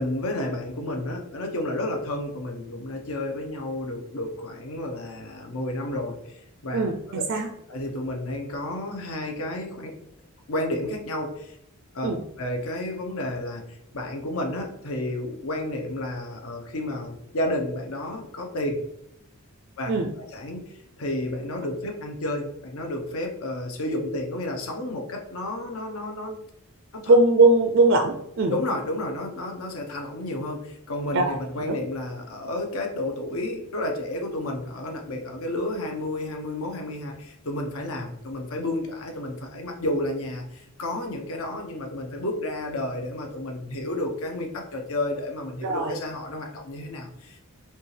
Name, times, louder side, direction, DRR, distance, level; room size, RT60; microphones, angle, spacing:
voice 1, 0.0-6.8 7.1-7.2 7.7-9.9 10.5-11.5 11.9-12.1 12.4-18.8 19.8-19.9 20.3-20.6 21.0-26.3 26.9-27.1 28.5-47.4, left 1 dB, 65° left, 2 dB, 0.8 m, -31 dB
voice 2, 6.7-7.5 12.0-12.2 19.9-20.1 27.1-28.5 31.1-31.4 31.7-31.8 45.6-45.9, right 2 dB, 55° right, 5 dB, 0.4 m, -20 dB
5.5 x 2.4 x 3.2 m, 0.76 s
head